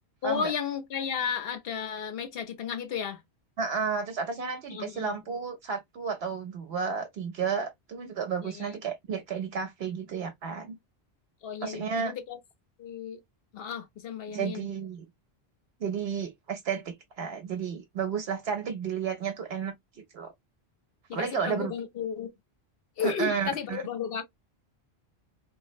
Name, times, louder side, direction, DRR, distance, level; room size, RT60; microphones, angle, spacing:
voice 1, 0.2-3.2 4.7-5.2 8.4-8.8 11.4-12.4 12.8-13.2 13.5-14.7 21.1-22.3 23.0-24.2, left 6 dB, 65° left, 0.9 m, -33 dB
voice 2, 3.6-10.8 11.6-12.1 14.3-15.0 15.8-19.7 20.1-20.3 21.1-21.7 23.0-23.8, right 6 dB, 75° right, 0.8 m, -32 dB
3.7 x 2.0 x 2.4 m
omnidirectional pair, 1.1 m